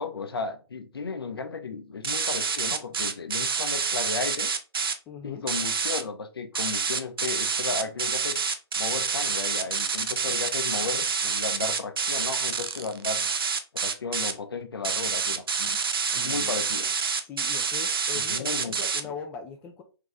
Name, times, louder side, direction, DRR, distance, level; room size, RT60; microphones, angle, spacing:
voice 1, 0.0-4.5 5.2-8.4 8.8-13.3 13.8-15.8 16.1-16.9 18.1-18.7 19.0-19.1, left 4 dB, 65° left, 8 dB, 0.7 m, -34 dB
sound 1, 2.0-4.9 5.5-6.0 6.5-14.3 14.8-19.0, right 5 dB, 60° right, 0.6 m, -27 dB
voice 2, 5.1-5.4 16.2-16.5 17.3-19.8, left 6 dB, 10° left, 3 dB, 0.3 m, -40 dB
3.8 x 3.1 x 3.4 m, 0.34 s
figure-of-eight pair, 135°, 14 cm